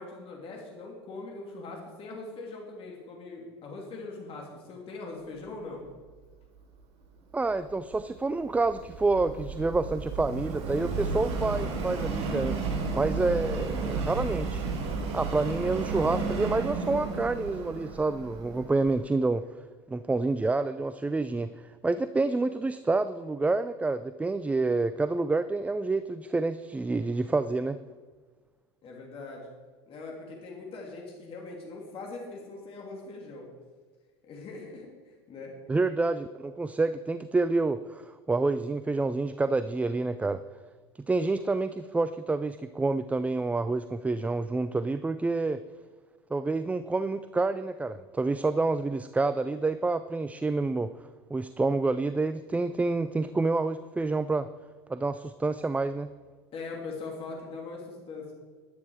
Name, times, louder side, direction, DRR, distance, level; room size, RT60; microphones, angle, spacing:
voice 1, 0.0-5.8 28.8-29.5 29.9-33.5 34.2-35.5 56.5-58.3, left 3 dB, 40° left, -1 dB, 2.8 m, -41 dB
voice 2, 7.3-14.6 15.1-19.4 19.9-27.8 35.7-40.4 41.1-45.6 46.3-50.9 51.3-54.5 54.9-56.1, right 3 dB, 10° right, 13 dB, 0.4 m, -28 dB
Subway metro underground, 7.7-19.0, right 4 dB, 50° right, 4.3 m, -33 dB
11.5 x 10.0 x 4.8 m, 1.4 s
hypercardioid pair, 85°, 14 cm